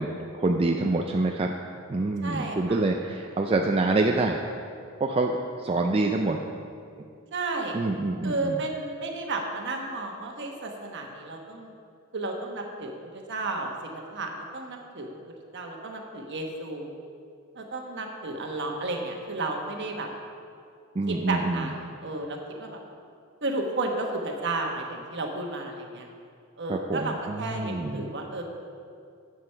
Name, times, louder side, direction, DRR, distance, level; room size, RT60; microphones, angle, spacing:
voice 1, 0.0-1.5 1.9-4.5 5.0-6.4 7.7-8.6 21.0-21.7 26.7-28.1, right 2 dB, 25° right, 2 dB, 0.4 m, -26 dB
voice 2, 2.2-2.8 7.3-7.8 8.2-11.7 12.1-15.1 15.5-16.9 17.5-20.1 21.1-22.8 23.4-26.1 26.6-28.4, right 2 dB, 55° right, 2 dB, 1.2 m, -32 dB
8.0 x 7.8 x 5.6 m, 2.3 s
head